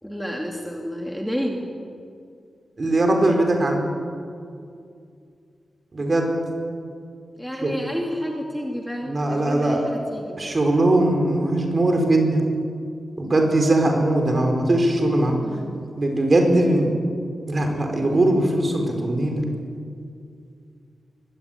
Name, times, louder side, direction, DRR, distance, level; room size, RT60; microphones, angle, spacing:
voice 1, 0.0-1.6 3.1-3.4 7.4-10.6 15.4-15.7, equal, ahead, 0 dB, 2.6 m, -30 dB
voice 2, 2.8-3.8 5.9-6.3 7.6-7.7 9.1-9.9 10.4-12.4 13.2-15.4 16.0-17.0 17.5-19.4, right 1 dB, 35° right, 3 dB, 4.7 m, -20 dB
23.5 x 23.0 x 9.3 m, 2.3 s
wide cardioid pair, 150°, 0 cm